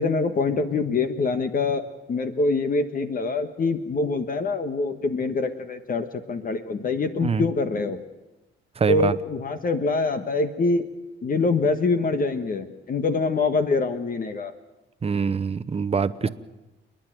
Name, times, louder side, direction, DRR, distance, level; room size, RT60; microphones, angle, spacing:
voice 1, 0.0-8.0 8.9-10.9 11.2-14.5, left 3 dB, 45° left, 8 dB, 1.4 m, -25 dB
voice 2, 8.8-9.1 15.0-16.3, right 5 dB, 30° right, 14 dB, 0.9 m, -24 dB
29.0 x 10.5 x 9.2 m, 1.1 s
cardioid pair, 90°, 20 cm